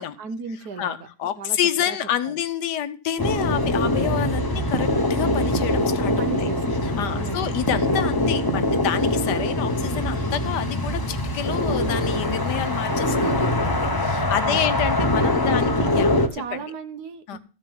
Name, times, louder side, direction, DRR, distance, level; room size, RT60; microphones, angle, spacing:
voice 1, 0.0-1.0 1.4-1.6 1.9-2.0 2.2-2.3 6.2-6.6 7.0-7.6 14.4-14.7 15.2-15.7 16.3-17.4, right 5 dB, 60° right, 10 dB, 1.5 m, -35 dB
voice 2, 0.8-6.5 6.8-16.6 17.3-17.4, left 10 dB, 70° left, 13 dB, 1.3 m, -28 dB
sound 1, 3.2-16.3, left 1 dB, 20° left, 0.6 m, -23 dB
14.5 x 5.3 x 7.3 m, 0.36 s
omnidirectional pair, 2.0 m